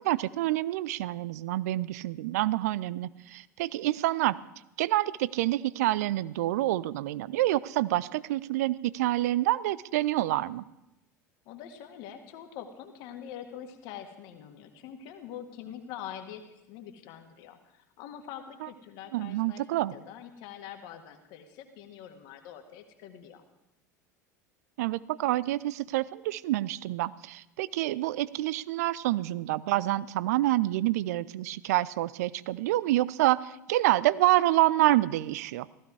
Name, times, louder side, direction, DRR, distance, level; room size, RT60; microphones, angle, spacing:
voice 1, 0.0-4.4 4.8-10.6 18.6-18.7 19.1-19.9 24.8-35.7, right 16 dB, 60° right, 18 dB, 0.5 m, -27 dB
voice 2, 11.5-19.6 19.9-23.4, left 9 dB, 50° left, 5 dB, 1.8 m, -44 dB
16.0 x 14.5 x 4.8 m, 0.89 s
figure-of-eight pair, 70°, 10 cm